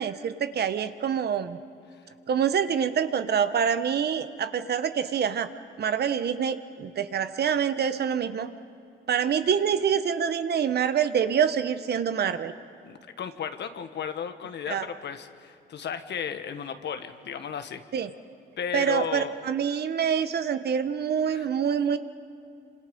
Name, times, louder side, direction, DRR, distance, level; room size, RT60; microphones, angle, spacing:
voice 1, 0.0-1.6 2.3-5.5 5.8-8.5 9.1-12.5 14.7-14.9 17.9-18.1 18.7-22.0, right 7 dB, 55° right, 11 dB, 1.2 m, -26 dB
voice 2, 12.8-17.8 18.6-19.3 21.3-21.5, left 7 dB, 60° left, 9 dB, 1.5 m, -34 dB
27.5 x 26.0 x 5.4 m, 2.6 s
cardioid pair, 90°, 20 cm